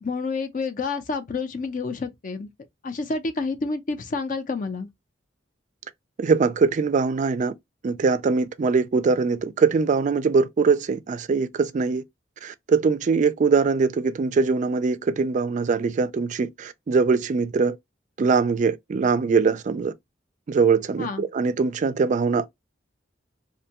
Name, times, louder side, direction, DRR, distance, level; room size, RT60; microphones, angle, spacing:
voice 1, 0.0-2.5 2.8-4.9 21.0-21.2, left 4 dB, 45° left, 0.5 m, -29 dB
voice 2, 6.2-7.5 7.8-12.0 12.4-17.8 18.2-19.9 20.5-22.5, right 4 dB, 40° right, 0.3 m, -22 dB
2.6 x 2.2 x 2.8 m
head